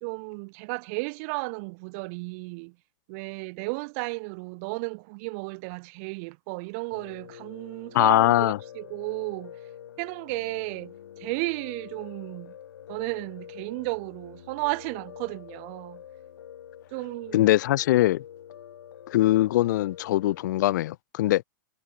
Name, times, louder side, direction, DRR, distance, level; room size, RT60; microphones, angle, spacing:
voice 1, 0.0-2.8 3.1-9.6 10.0-12.5 12.9-16.0 16.9-17.5, right 31 dB, 45° right, 2.5 m, -34 dB
Piano, 6.9-20.6, left 10 dB, 80° left, 2.6 m, -46 dB
voice 2, 7.9-8.6 17.3-18.2 19.1-21.4, left 15 dB, 60° left, 0.5 m, -22 dB
hypercardioid pair, 145°, 11 cm